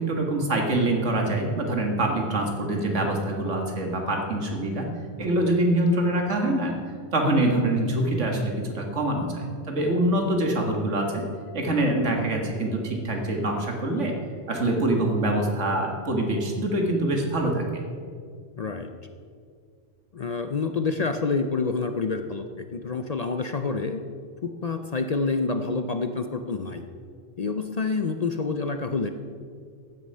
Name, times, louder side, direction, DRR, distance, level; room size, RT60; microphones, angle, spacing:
voice 1, 0.0-4.9 5.2-6.7 7.1-11.2 11.5-14.1 14.5-17.8, right 1 dB, 85° right, 2 dB, 2.1 m, -25 dB
voice 2, 18.6-18.9 20.1-24.0 24.4-26.8 27.4-29.1, left 4 dB, 45° left, 7 dB, 0.5 m, -28 dB
14.5 x 9.5 x 5.5 m, 2.2 s
omnidirectional pair, 1.2 m